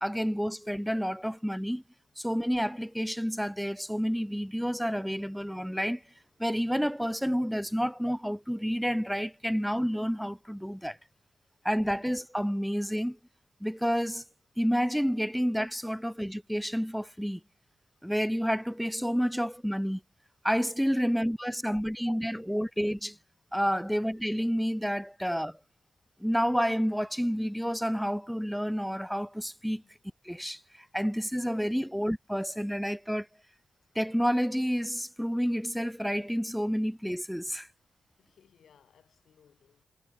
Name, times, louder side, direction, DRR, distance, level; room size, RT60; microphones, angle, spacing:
voice 1, 0.0-1.8 2.2-6.0 6.4-11.0 11.6-13.2 13.6-14.2 14.6-17.4 18.0-20.0 20.4-23.2 23.5-25.6 26.2-29.8 30.2-33.3 34.0-37.7, equal, ahead, 0.4 m, -29 dB
voice 2, 38.2-39.9, left 8 dB, 80° left, 1.7 m, -63 dB
cardioid pair, 55°, 0 cm